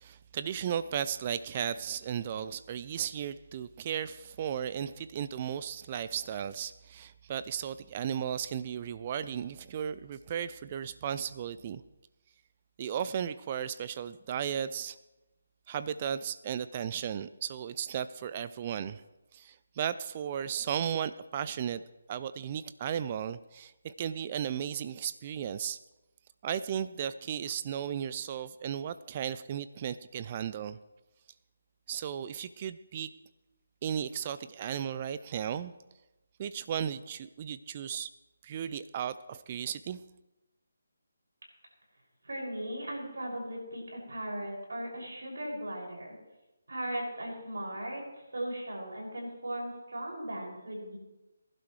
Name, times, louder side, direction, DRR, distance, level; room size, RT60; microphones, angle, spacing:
voice 1, 0.0-11.8 12.8-15.0 15.7-19.0 19.3-21.8 22.1-25.8 26.4-30.8 31.9-33.1 33.8-35.7 36.4-38.1 38.4-40.0, right 9 dB, 35° right, 14 dB, 0.4 m, -35 dB
voice 2, 42.2-46.2 46.7-51.0, right 1 dB, 75° right, -2 dB, 6.4 m, -38 dB
23.0 x 11.5 x 3.3 m, 1.0 s
figure-of-eight pair, 150°, 0 cm